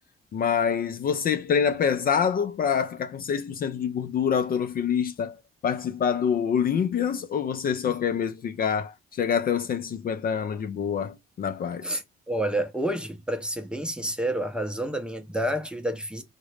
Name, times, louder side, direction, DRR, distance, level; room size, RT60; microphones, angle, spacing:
voice 1, 0.3-5.4 5.6-12.0, left 7 dB, 45° left, 0.4 m, -26 dB
voice 2, 11.8-16.2, right 1 dB, 5° right, 0.6 m, -29 dB
3.7 x 2.2 x 3.1 m
cardioid pair, 90°, 20 cm